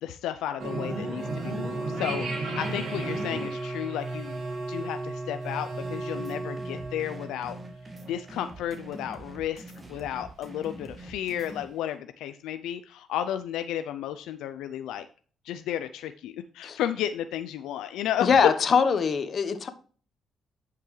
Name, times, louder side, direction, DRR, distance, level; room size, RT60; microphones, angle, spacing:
voice 1, 0.0-4.4 4.7-7.6 8.1-15.1 15.4-18.3, left 11 dB, 90° left, 0.4 m, -33 dB
sound 1, 0.6-8.6, right 2 dB, 70° right, 3.1 m, -34 dB
sound 2, 5.8-11.7, right 1 dB, 25° right, 1.7 m, -45 dB
voice 2, 18.2-19.7, left 6 dB, 50° left, 1.0 m, -22 dB
10.5 x 5.8 x 3.2 m
cardioid pair, 90°, 0 cm